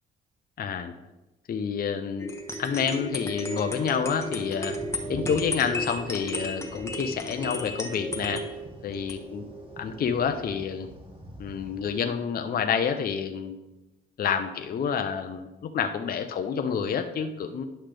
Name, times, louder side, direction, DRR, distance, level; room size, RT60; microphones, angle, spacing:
voice 1, 0.6-0.9 1.5-2.3 2.6-4.8 5.1-8.4 8.8-9.4 9.8-10.9 11.4-13.6 14.2-17.6, left 7 dB, 50° left, 6 dB, 0.6 m, -28 dB
sound 1, 2.2-10.5, left 1 dB, 15° left, 1.2 m, -35 dB
sound 2, 4.7-12.0, right 1 dB, 25° right, 1.6 m, -46 dB
10.0 x 5.7 x 3.4 m, 1.0 s
cardioid pair, 90°, 20 cm